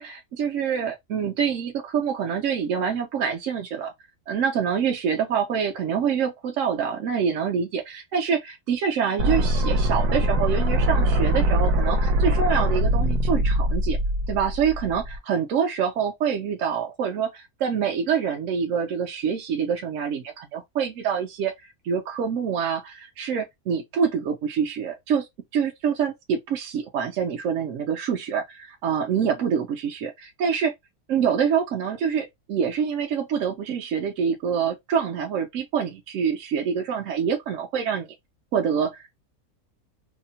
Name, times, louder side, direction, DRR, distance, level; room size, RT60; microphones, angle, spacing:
voice 1, 0.0-3.9 4.3-14.0 14.3-21.5 21.8-25.3 25.5-30.7 31.1-38.1 38.5-39.1, right 7 dB, 65° right, 0.8 m, -26 dB
sound 1, 9.2-15.2, equal, 80° right, 1.2 m, -22 dB
2.8 x 2.0 x 2.6 m
omnidirectional pair, 1.6 m